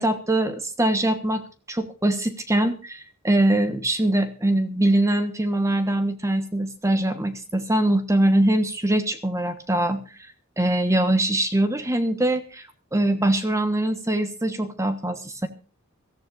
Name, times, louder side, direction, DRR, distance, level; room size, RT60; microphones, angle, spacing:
voice 1, 0.0-10.0 10.6-15.5, right 1 dB, 15° right, 9 dB, 1.2 m, -23 dB
23.0 x 14.5 x 2.5 m, 0.35 s
head